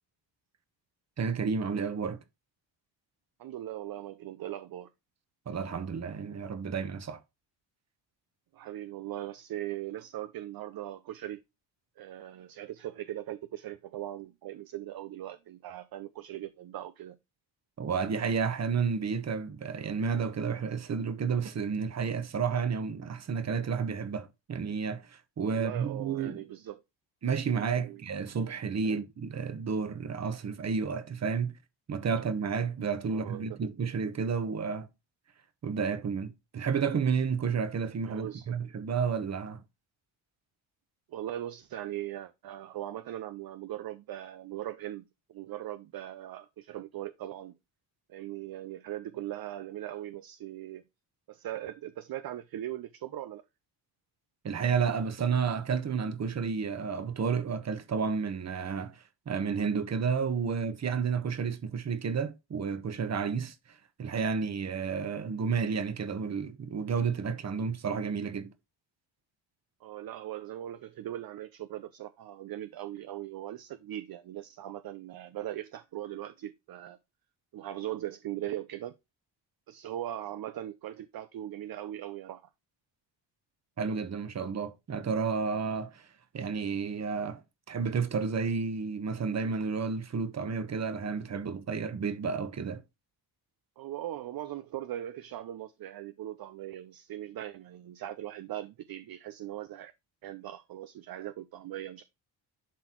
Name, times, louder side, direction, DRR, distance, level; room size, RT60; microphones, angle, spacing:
voice 1, 1.2-2.2 5.5-7.2 17.8-26.4 27.2-31.6 31.9-34.9 35.6-39.6 54.4-68.5 83.8-86.1 86.3-87.4 87.7-92.8, right 6 dB, 35° right, 1.1 m, -31 dB
voice 2, 3.4-4.9 8.5-11.4 12.0-17.2 25.5-26.8 27.8-28.0 28.8-29.0 33.1-33.6 38.1-38.6 41.1-47.5 48.1-50.8 51.3-53.4 69.8-77.0 77.5-78.9 79.7-82.5 93.8-99.9 100.2-102.0, right 13 dB, 50° right, 0.6 m, -40 dB
11.5 x 4.0 x 3.0 m
cardioid pair, 135°, 45 cm